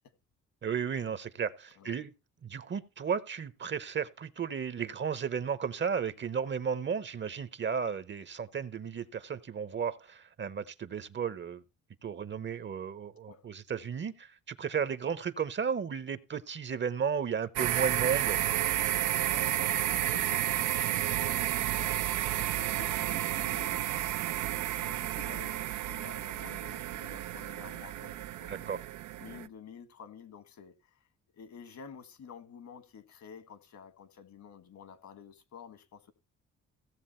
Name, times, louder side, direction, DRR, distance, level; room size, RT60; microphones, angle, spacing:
voice 1, 0.6-2.1 2.4-11.6 12.0-18.4 28.5-28.8, right 6 dB, 40° right, 0.8 m, -34 dB
sound 1, 17.6-29.5, right 13 dB, 80° right, 0.6 m, -31 dB
voice 2, 19.3-22.1 22.3-23.9 24.4-28.7 29.2-31.0 31.3-36.1, left 6 dB, 65° left, 1.8 m, -50 dB
16.5 x 7.3 x 4.3 m
cardioid pair, 90°, 30 cm